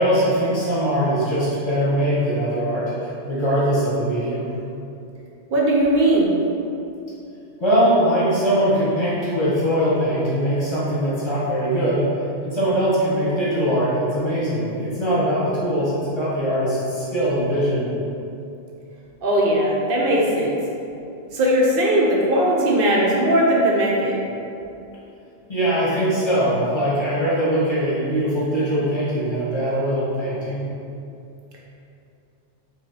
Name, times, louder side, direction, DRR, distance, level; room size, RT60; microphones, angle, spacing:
voice 1, 0.0-2.9 3.3-4.5 7.6-12.1 12.4-17.9 25.5-30.7, equal, 25° left, -9 dB, 0.9 m, -21 dB
voice 2, 5.5-6.3 19.2-20.5 21.3-24.1, right 1 dB, 60° right, -3 dB, 0.7 m, -18 dB
3.1 x 2.9 x 3.9 m, 2.7 s
omnidirectional pair, 1.2 m